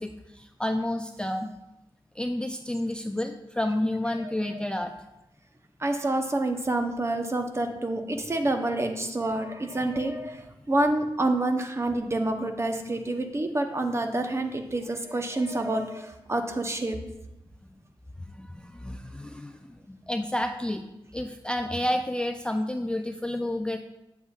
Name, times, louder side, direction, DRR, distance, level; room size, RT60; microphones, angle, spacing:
voice 1, 0.0-1.5 2.2-4.9 18.3-20.9 21.1-23.8, left 1 dB, 10° left, 5 dB, 0.3 m, -30 dB
voice 2, 4.2-4.6 5.8-17.0, right 2 dB, 25° right, 5 dB, 0.8 m, -28 dB
8.0 x 7.3 x 2.3 m, 0.91 s
wide cardioid pair, 90°, 10 cm